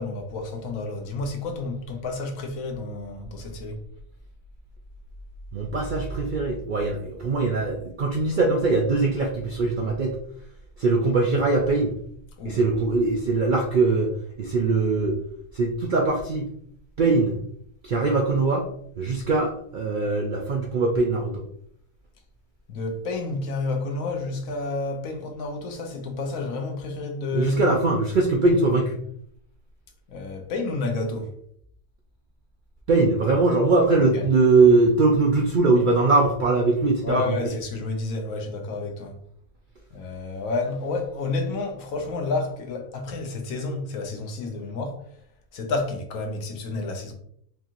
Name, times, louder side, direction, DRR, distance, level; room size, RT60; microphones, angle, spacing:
voice 1, 0.0-3.8 12.4-12.6 22.7-27.7 30.1-31.3 34.1-34.3 37.0-39.2 39.9-45.0 45.5-47.1, left 3 dB, 80° left, 1.1 m, -30 dB
voice 2, 5.5-10.2 10.8-12.0 12.4-14.1 14.4-15.2 15.5-16.5 17.0-17.4 17.8-18.6 19.0-21.4 27.3-29.0 32.9-37.4, right 3 dB, 65° right, 0.4 m, -21 dB
4.6 x 2.5 x 2.9 m
omnidirectional pair, 1.4 m